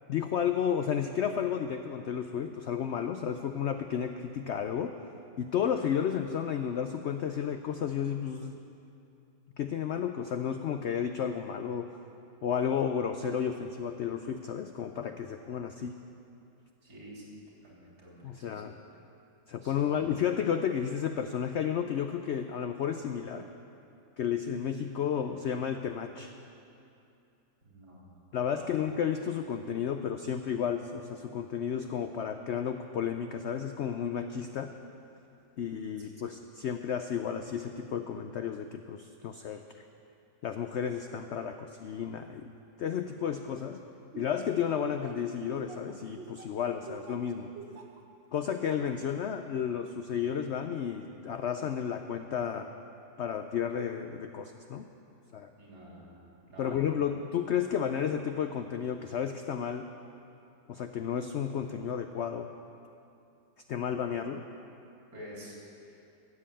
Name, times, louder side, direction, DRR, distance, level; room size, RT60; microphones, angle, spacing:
voice 1, 0.1-4.9 5.4-8.6 9.6-11.9 12.4-15.9 18.2-18.8 19.5-23.5 24.2-26.3 28.3-34.7 35.6-39.9 40.4-42.5 42.8-43.8 44.2-47.5 48.3-52.7 53.2-54.9 55.3-55.5 56.6-59.9 60.7-62.5 63.7-64.4, left 8 dB, 85° left, 7 dB, 0.6 m, -32 dB
voice 2, 16.8-17.3 17.6-18.6 19.6-20.1 27.7-28.2 28.5-28.8 36.0-36.2 55.6-57.0 65.1-65.6 65.9-66.0, equal, 70° right, -5 dB, 4.0 m, -49 dB
Laughter, 44.1-48.0 48.5-48.9, right 5 dB, 45° right, 1.1 m, -46 dB
14.5 x 7.6 x 8.5 m, 2.7 s
omnidirectional pair, 1.8 m